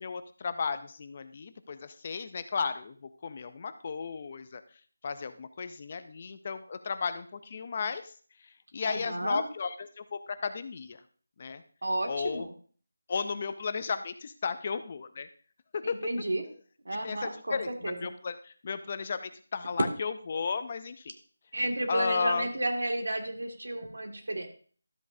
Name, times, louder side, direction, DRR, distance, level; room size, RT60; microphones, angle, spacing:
voice 1, 0.0-4.6 5.0-8.1 8.4-11.0 11.4-11.6 12.1-12.5 13.1-15.3 15.7-16.0 16.9-21.1 21.9-22.5, left 5 dB, 25° left, 12 dB, 0.4 m, -34 dB
voice 2, 8.8-9.4 11.8-12.5 15.8-16.4 16.9-18.0 21.5-24.5, right 1 dB, 75° right, 4 dB, 2.0 m, -32 dB
12.5 x 8.2 x 2.6 m, 0.43 s
figure-of-eight pair, 175°, 0 cm